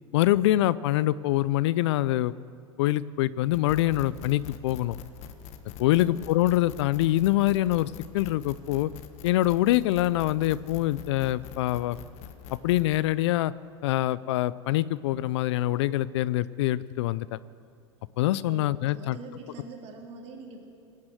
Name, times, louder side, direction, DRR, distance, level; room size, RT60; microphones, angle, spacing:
voice 1, 0.1-2.3 2.8-5.0 5.8-8.9 9.2-12.0 12.5-13.5 13.8-17.4 18.2-19.2, left 15 dB, 70° left, 19 dB, 0.4 m, -25 dB
sound 1, 3.5-13.0, left 9 dB, 50° left, 1.3 m, -44 dB
voice 2, 18.5-20.7, right 3 dB, 45° right, 1 dB, 3.1 m, -43 dB
18.0 x 9.5 x 7.8 m, 2.6 s
hypercardioid pair, 100°, 15 cm